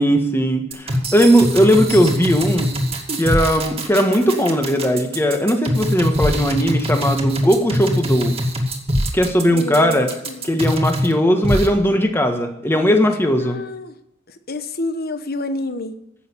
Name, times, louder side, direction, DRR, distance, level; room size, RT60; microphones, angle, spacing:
voice 1, 0.0-2.7 3.2-8.3 9.1-10.1 10.4-13.6, equal, 10° left, 5 dB, 1.5 m, -18 dB
sound 1, 0.7-11.1 11.4-11.7, equal, 30° right, 2.2 m, -22 dB
voice 2, 9.5-10.5 13.4-14.0 14.3-16.0, left 2 dB, 50° left, 9 dB, 1.1 m, -28 dB
16.0 x 6.9 x 8.3 m, 0.81 s
head